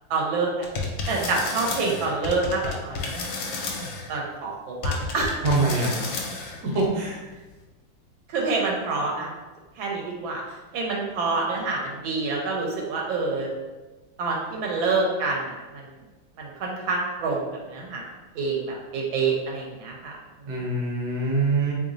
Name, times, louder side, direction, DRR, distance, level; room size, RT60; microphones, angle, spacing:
voice 1, 0.1-0.7 1.1-3.0 4.1-5.4 8.3-9.3 9.8-10.4 10.7-13.5 14.2-15.9 16.4-18.0 18.3-20.2, right 3 dB, 85° right, -2 dB, 1.4 m, -27 dB
sound 1, 0.6-4.1 4.8-6.9, left 3 dB, 80° left, 1.3 m, -31 dB
voice 2, 5.4-5.9 6.4-7.2 20.5-21.7, right 3 dB, 60° right, -2 dB, 1.2 m, -24 dB
3.8 x 3.2 x 2.5 m, 1.2 s
omnidirectional pair, 2.1 m